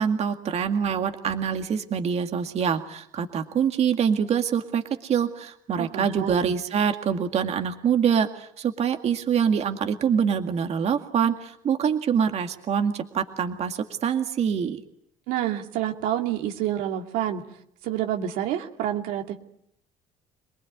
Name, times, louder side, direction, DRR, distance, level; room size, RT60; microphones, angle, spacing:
voice 1, 0.0-14.8, right 7 dB, 50° right, 6 dB, 2.0 m, -25 dB
voice 2, 5.8-6.5 15.3-17.4 17.8-19.4, right 11 dB, 85° right, 3 dB, 2.6 m, -28 dB
27.0 x 19.5 x 9.5 m, 0.73 s
cardioid pair, 100°, 14 cm